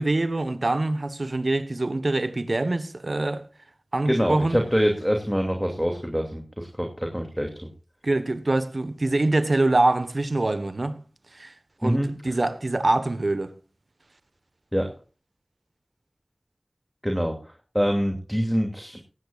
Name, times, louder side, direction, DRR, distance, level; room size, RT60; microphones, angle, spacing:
voice 1, 0.0-3.4 3.9-4.6 8.0-11.0 11.3-11.5 11.8-13.5, right 2 dB, 60° right, 1.3 m, -24 dB
voice 2, 4.0-7.7 11.8-12.1 14.7-14.9 17.0-19.0, equal, ahead, 2.6 m, -25 dB
18.0 x 16.0 x 2.5 m
wide cardioid pair, 45°, 0 cm